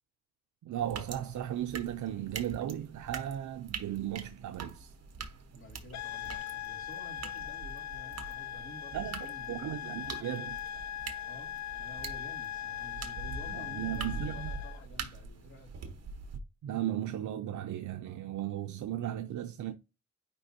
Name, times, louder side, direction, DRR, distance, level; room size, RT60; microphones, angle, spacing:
voice 1, 0.6-4.9 8.9-10.6 13.5-14.5 16.6-19.7, right 11 dB, 80° right, 0.6 m, -36 dB
sound 1, 0.8-16.4, right 4 dB, 55° right, 1.2 m, -44 dB
voice 2, 5.5-9.6 11.3-16.0, left 1 dB, 45° left, 2.2 m, -51 dB
sound 2, 5.9-14.9, left 11 dB, 65° left, 0.5 m, -40 dB
9.8 x 3.4 x 2.8 m
wide cardioid pair, 135°, 30 cm